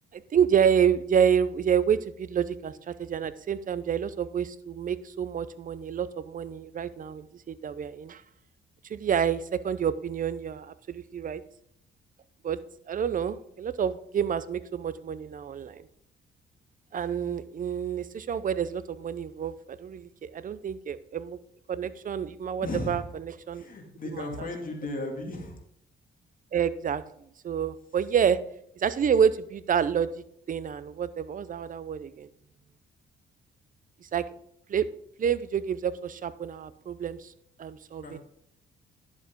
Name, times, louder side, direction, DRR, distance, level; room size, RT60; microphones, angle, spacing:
voice 1, 0.1-8.2 8.9-11.4 12.4-12.6 12.9-15.9 16.9-21.4 21.7-23.0 23.5-23.7 24.1-24.5 26.5-27.0 27.4-28.4 28.8-32.3 34.0-34.2 34.7-34.9 35.2-37.3 37.6-38.2, right 8 dB, 45° right, 15 dB, 0.6 m, -28 dB
voice 2, 22.6-23.1 23.5-25.6 38.0-38.2, left 2 dB, 45° left, 2 dB, 2.3 m, -35 dB
10.5 x 7.3 x 3.7 m, 0.69 s
cardioid pair, 90°, 20 cm